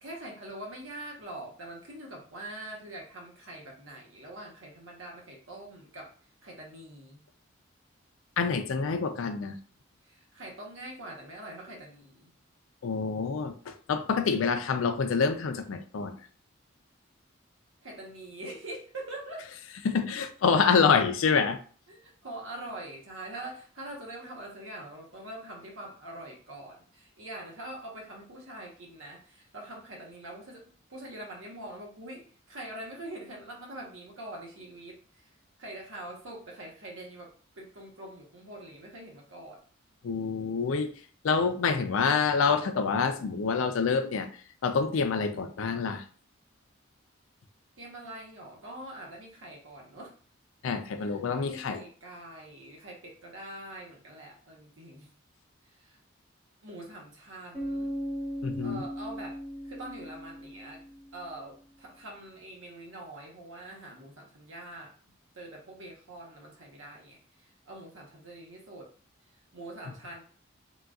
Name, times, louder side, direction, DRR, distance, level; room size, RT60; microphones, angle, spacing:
voice 1, 0.0-7.2 10.0-12.3 17.8-19.5 21.9-35.3 35.6-39.6 47.8-50.2 51.0-55.1 55.6-56.0 56.6-57.9 58.6-60.8 61.1-64.9 65.3-68.9 69.2-70.2, right 1 dB, 75° right, -1 dB, 1.0 m, -44 dB
voice 2, 8.4-9.6 12.8-16.1 19.8-21.6 40.0-40.9 41.2-44.3 44.6-46.0 50.6-51.8 58.4-58.8, left 5 dB, 85° left, 8 dB, 0.4 m, -27 dB
Bass guitar, 57.5-61.4, equal, 15° right, 1.1 m, -37 dB
3.8 x 2.3 x 2.3 m, 0.42 s
head